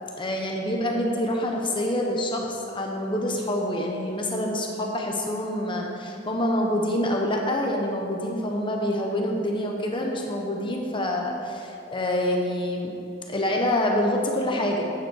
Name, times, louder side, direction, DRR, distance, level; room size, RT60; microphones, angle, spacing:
voice 1, 0.2-12.9 13.3-14.8, left 1 dB, 25° left, 0 dB, 1.0 m, -26 dB
9.3 x 7.6 x 6.4 m, 2.7 s
head